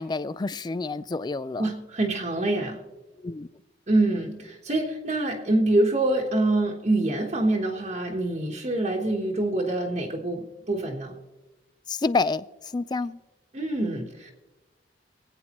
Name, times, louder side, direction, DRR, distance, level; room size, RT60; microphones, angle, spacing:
voice 1, 0.0-1.7 3.2-3.5 11.9-13.2, left 3 dB, 25° left, 0.4 m, -28 dB
voice 2, 1.6-2.8 3.9-11.1 13.5-14.3, right 2 dB, 40° right, 1.2 m, -25 dB
25.5 x 8.7 x 3.0 m
head